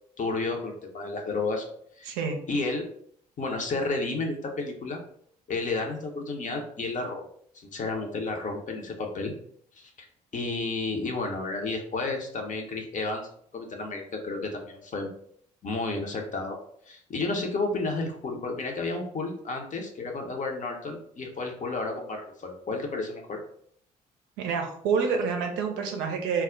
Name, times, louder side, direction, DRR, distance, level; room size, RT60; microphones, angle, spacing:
voice 1, 0.2-1.7 2.0-2.1 2.5-2.9 3.4-5.0 5.5-7.2 7.5-9.3 9.8-10.1 10.3-13.3 13.5-15.1 15.6-16.6 16.9-23.4, left 3 dB, 40° left, 2 dB, 0.7 m, -31 dB
voice 2, 2.0-2.4 24.4-26.4, right 5 dB, 70° right, 4 dB, 0.5 m, -27 dB
2.2 x 2.1 x 3.7 m, 0.64 s
figure-of-eight pair, 45°, 20 cm